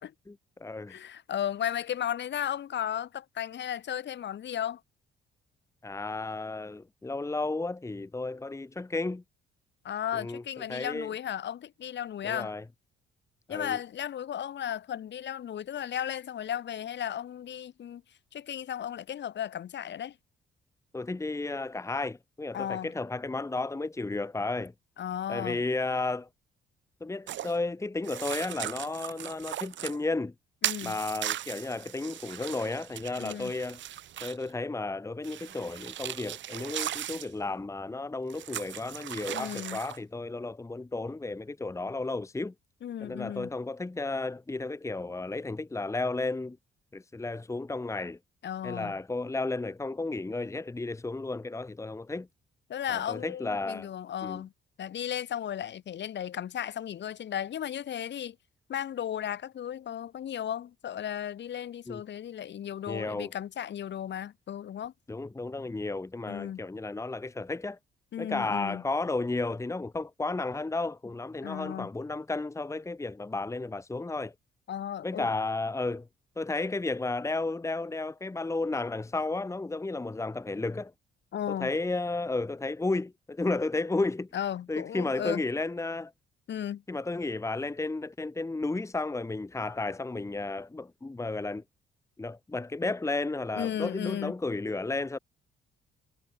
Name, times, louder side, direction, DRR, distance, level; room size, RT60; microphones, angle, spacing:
voice 1, 0.3-1.0 5.8-9.2 10.1-10.4 10.7-11.1 12.2-12.6 13.5-13.8 20.9-24.7 25.3-26.3 27.0-30.3 30.8-33.8 34.2-42.5 43.0-46.6 46.9-48.2 48.6-52.3 52.9-53.9 54.2-54.4 61.9-62.0 62.9-63.3 65.1-67.8 68.2-74.3 75.0-76.1 76.4-80.9 81.5-84.3 84.7-86.1 86.9-91.6 92.2-95.2, left 3 dB, 15° left, 1.2 m, -33 dB
voice 2, 0.9-4.8 9.8-12.5 13.5-18.0 18.3-20.2 22.5-22.9 25.0-25.6 30.6-31.0 33.2-33.5 39.3-39.8 42.8-43.5 48.4-48.9 52.7-54.5 54.8-58.4 58.7-64.9 66.3-66.6 68.1-68.8 71.4-71.9 74.7-75.3 81.3-81.7 84.3-85.4 86.5-86.8 93.5-94.3, left 10 dB, 65° left, 3.3 m, -35 dB
sound 1, 27.3-27.5 28.0-30.0 30.6-34.5 35.2-37.3 38.3-40.0, right 12 dB, 70° right, 1.3 m, -37 dB
cardioid pair, 90°, 20 cm